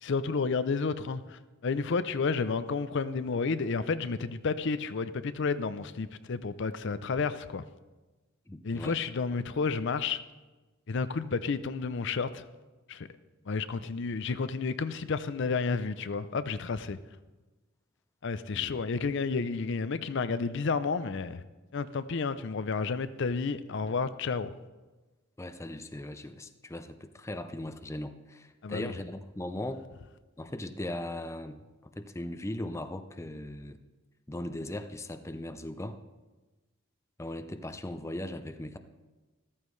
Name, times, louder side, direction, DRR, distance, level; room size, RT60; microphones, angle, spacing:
voice 1, 0.0-7.6 8.6-10.2 10.9-12.4 12.9-13.1 13.5-17.0 18.2-21.4 21.7-24.5 28.6-28.9, left 4 dB, 60° left, 13 dB, 0.5 m, -31 dB
voice 2, 8.5-9.0 18.5-18.8 25.4-29.8 30.4-31.6 32.0-33.8 34.3-36.0 37.2-38.8, left 1 dB, 15° left, 9 dB, 0.5 m, -38 dB
14.0 x 13.5 x 3.2 m, 1.2 s
head